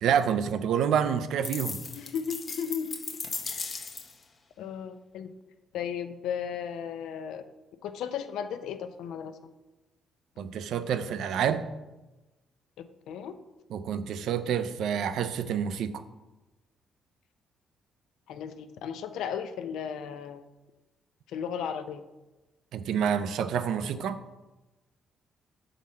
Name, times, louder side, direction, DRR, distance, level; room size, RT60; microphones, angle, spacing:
voice 1, 0.0-1.8 10.4-11.6 13.7-16.0 22.7-24.2, right 8 dB, 80° right, 11 dB, 0.4 m, -28 dB
sound 1, 1.4-4.2, left 4 dB, 45° left, 0.7 m, -37 dB
voice 2, 1.9-3.0 3.4-3.9 4.6-5.3 5.7-7.4 7.8-9.3 13.1-13.3 18.3-20.4 21.3-22.0, left 7 dB, 85° left, 10 dB, 0.4 m, -35 dB
6.2 x 3.9 x 4.2 m, 1.1 s
cardioid pair, 90°, 0 cm